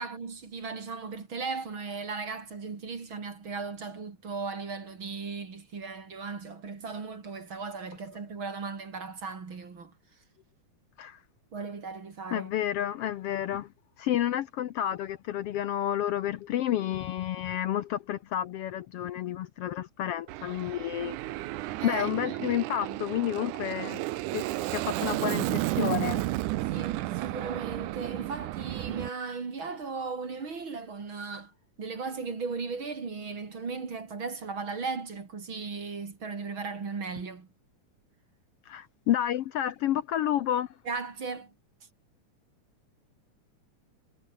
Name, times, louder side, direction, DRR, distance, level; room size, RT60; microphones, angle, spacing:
voice 1, 0.0-9.9 11.5-12.5 21.8-22.5 22.8-23.0 26.7-31.5 31.8-37.5 40.8-41.5, right 4 dB, 40° right, 3.5 m, -37 dB
voice 2, 12.3-13.7 14.0-21.2 21.8-24.0 24.3-24.5 24.7-26.2 38.7-40.7, left 11 dB, 75° left, 1.4 m, -30 dB
Aircraft, 20.3-29.1, right 17 dB, 85° right, 2.3 m, -32 dB
omnidirectional pair, 3.6 m